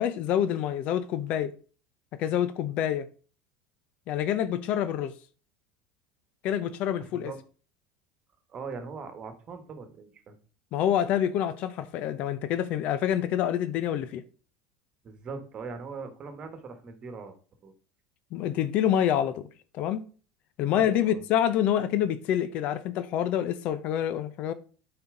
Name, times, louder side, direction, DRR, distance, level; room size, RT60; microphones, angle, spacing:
voice 1, 0.0-1.5 2.2-3.1 4.1-5.1 6.4-7.3 10.7-14.2 18.3-19.5 19.7-20.0 20.6-24.5, left 10 dB, 55° left, 0.6 m, -27 dB
voice 2, 7.0-7.4 8.5-10.3 15.0-17.4 17.6-17.7 20.7-21.2, right 4 dB, 35° right, 1.4 m, -40 dB
8.0 x 4.4 x 3.7 m
supercardioid pair, 100°, 3 cm